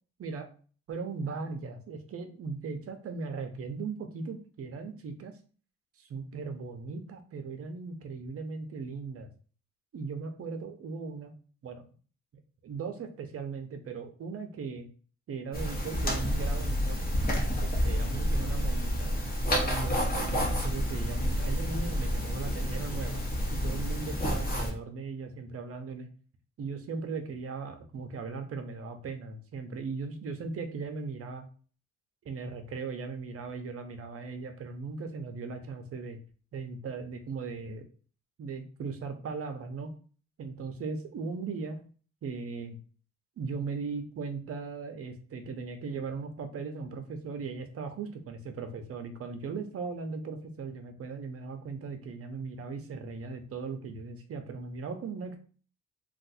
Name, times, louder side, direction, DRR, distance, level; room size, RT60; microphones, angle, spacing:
voice 1, 0.9-5.3 6.0-9.3 9.9-11.3 11.6-11.8 12.6-14.9 15.3-17.0 17.6-19.2 19.5-23.2 23.5-26.1 26.6-31.5 32.2-36.2 36.5-37.8 38.4-39.9 40.4-41.8 42.2-42.8 43.4-55.4, right 4 dB, 50° right, 6 dB, 0.7 m, -38 dB
sound 1, 15.5-24.7, equal, 30° left, 1.1 m, -29 dB
2.5 x 2.4 x 4.0 m, 0.41 s
cardioid pair, 90°, 30 cm